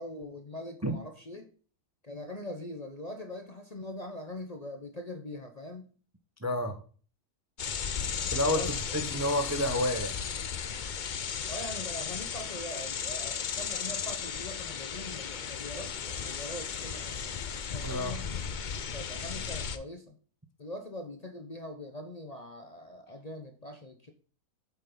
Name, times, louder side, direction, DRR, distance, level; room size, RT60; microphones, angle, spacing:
voice 1, 0.0-1.5 2.0-5.9 8.5-8.7 11.5-17.1 17.7-20.2 20.6-24.1, left 1 dB, 30° left, 0.9 m, -42 dB
voice 2, 6.4-6.8 8.3-8.7 8.9-10.1 17.8-18.2, left 1 dB, 15° right, 0.7 m, -29 dB
sound 1, 7.6-19.8, left 7 dB, 60° left, 0.5 m, -35 dB
8.3 x 7.4 x 3.9 m
omnidirectional pair, 1.6 m